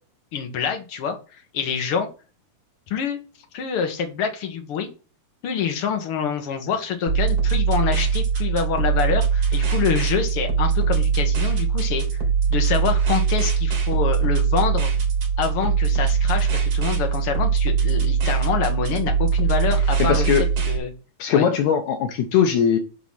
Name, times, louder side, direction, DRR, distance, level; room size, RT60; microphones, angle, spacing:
voice 1, 0.3-1.2 1.5-2.1 2.9-3.2 3.5-4.9 5.4-12.2 12.5-14.9 15.4-20.3 20.7-20.9 21.3-21.5, left 7 dB, 55° left, 1.7 m, -26 dB
sound 1, 7.1-20.8, right 6 dB, 45° right, 2.6 m, -21 dB
voice 2, 20.0-20.4 21.2-22.8, left 8 dB, 85° left, 1.6 m, -20 dB
8.1 x 4.0 x 5.7 m
omnidirectional pair, 4.4 m